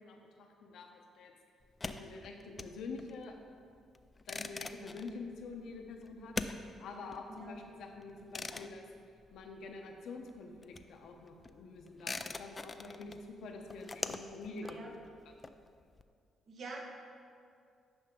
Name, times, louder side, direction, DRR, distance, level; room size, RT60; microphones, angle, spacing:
voice 1, 0.0-1.3 1.8-3.4 4.2-6.3 6.8-8.9 9.3-15.0 15.2-15.5, left 3 dB, 75° left, 3 dB, 0.9 m, -47 dB
sound 1, 1.6-10.0 10.2-16.0, left 3 dB, 25° left, 0.3 m, -44 dB
voice 2, 16.5-16.8, right 3 dB, 60° right, 0 dB, 1.1 m, -45 dB
9.9 x 5.5 x 3.8 m, 2.3 s
cardioid pair, 90°, 0 cm